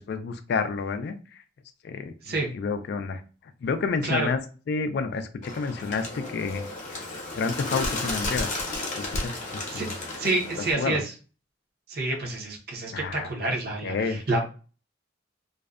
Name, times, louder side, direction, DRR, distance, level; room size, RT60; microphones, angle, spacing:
voice 1, 0.0-1.4 1.8-3.2 3.6-4.4 4.7-6.7 7.4-8.5 9.0-9.9 10.7-11.0 12.9-13.3 13.8-14.2, left 4 dB, 55° left, 9 dB, 0.3 m, -30 dB
Bird, 5.4-10.7, left 2 dB, 40° left, 0.7 m, -33 dB
voice 2, 10.2-11.0 11.9-14.4, right 2 dB, 55° right, 0 dB, 0.7 m, -28 dB
2.6 x 2.1 x 2.3 m, 0.36 s
head